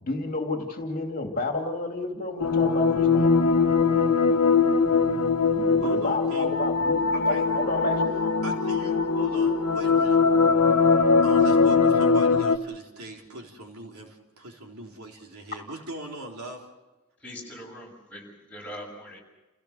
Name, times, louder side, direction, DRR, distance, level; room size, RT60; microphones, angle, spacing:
voice 1, 0.0-3.5 5.5-7.0 7.3-8.1, left 2 dB, 40° left, 2 dB, 2.8 m, -30 dB
sound 1, 2.4-12.6, left 4 dB, 85° left, 1.0 m, -21 dB
voice 2, 5.8-6.5 7.1-7.4 8.4-10.2 11.2-16.6, right 1 dB, 70° right, 0 dB, 3.9 m, -40 dB
voice 3, 17.2-19.2, equal, 5° left, -3 dB, 7.3 m, -42 dB
29.5 x 17.0 x 6.7 m, 1.0 s
head